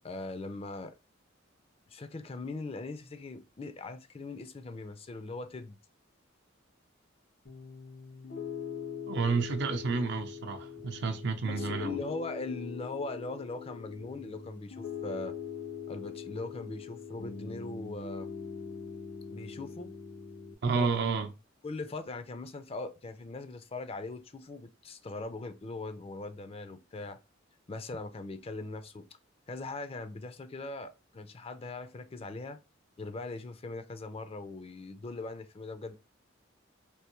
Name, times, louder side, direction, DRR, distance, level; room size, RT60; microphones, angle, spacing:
voice 1, 0.0-0.9 1.9-5.8 11.5-15.3 15.9-18.3 19.3-19.9 20.7-21.0 21.6-27.2 27.7-29.1 29.5-32.6 33.0-36.0, left 3 dB, 30° left, 0.4 m, -40 dB
Piano, 7.4-20.5, left 6 dB, 85° left, 1.5 m, -42 dB
voice 2, 9.1-12.0 20.6-21.3, right 4 dB, 60° right, 0.5 m, -30 dB
3.4 x 2.6 x 3.0 m
head